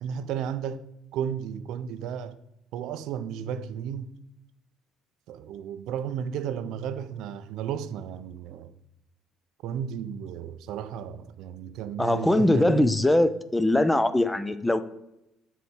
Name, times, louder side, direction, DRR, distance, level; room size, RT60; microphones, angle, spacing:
voice 1, 0.0-0.8 1.1-2.4 2.7-4.1 5.3-8.7 9.6-12.9, right 8 dB, 75° right, 0.4 m, -33 dB
voice 2, 12.0-14.8, left 1 dB, 5° left, 0.4 m, -22 dB
7.3 x 4.0 x 4.4 m
cardioid pair, 125°, 0 cm